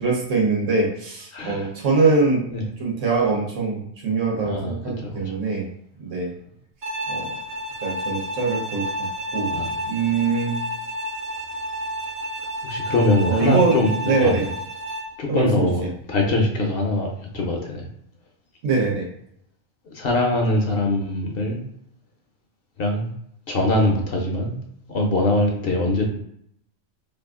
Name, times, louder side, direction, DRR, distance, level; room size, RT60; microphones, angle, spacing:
voice 1, 0.0-2.5 2.8-5.7 6.0-6.3 7.1-7.3 7.8-9.5 9.9-10.6 13.2-13.7 14.0-14.5 15.3-15.9 18.6-19.1, right 4 dB, 80° right, -2 dB, 1.2 m, -23 dB
voice 2, 1.3-1.7 2.5-2.6 4.4-5.3 9.5-9.7 12.6-13.9 14.2-14.5 15.2-15.8 16.1-17.1 17.3-17.9 19.9-21.6 22.8-23.1 23.5-24.5 24.9-26.0, left 1 dB, 55° left, 1 dB, 0.8 m, -22 dB
Bowed string instrument, 6.8-15.2, equal, 55° right, 0.8 m, -30 dB
2.8 x 2.4 x 3.5 m, 0.71 s
omnidirectional pair, 1.3 m